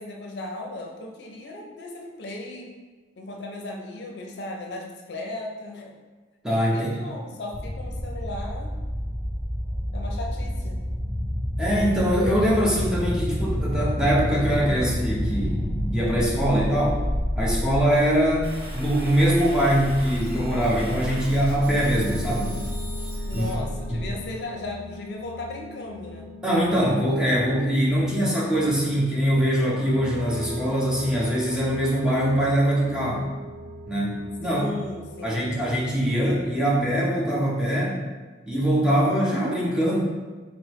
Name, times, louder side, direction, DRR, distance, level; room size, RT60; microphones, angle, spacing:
voice 1, 0.0-2.7 3.2-6.0 6.7-8.7 9.9-10.9 23.3-26.4 34.4-35.4, left 2 dB, 65° left, 1 dB, 0.5 m, -36 dB
voice 2, 6.4-6.9 11.6-17.0 17.3-22.6 23.3-23.4 23.9-24.0 26.4-33.3 33.9-34.6 35.2-37.9 38.5-40.0, equal, 5° right, -6 dB, 0.8 m, -23 dB
sound 1, 7.5-24.1, equal, 15° left, 0.4 m, -29 dB
sound 2, 18.4-23.5, left 1 dB, 65° right, 1.3 m, -42 dB
sound 3, 21.8-36.9, equal, 45° right, 0.5 m, -40 dB
4.1 x 3.2 x 3.1 m, 1.3 s
head